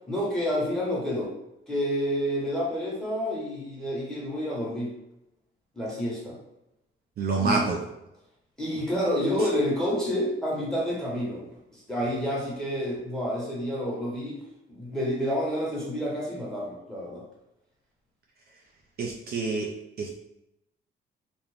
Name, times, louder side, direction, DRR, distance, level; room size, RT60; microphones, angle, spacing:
voice 1, 0.1-1.3 1.7-4.9 5.7-6.4 7.4-7.7 8.6-11.4 11.7-14.4 14.7-17.2, equal, 5° left, -6 dB, 1.2 m, -29 dB
voice 2, 7.2-7.8 19.0-19.7 20.0-20.2, right 4 dB, 50° right, -1 dB, 0.4 m, -27 dB
2.5 x 2.1 x 3.2 m, 0.86 s
cardioid pair, 90°, 20 cm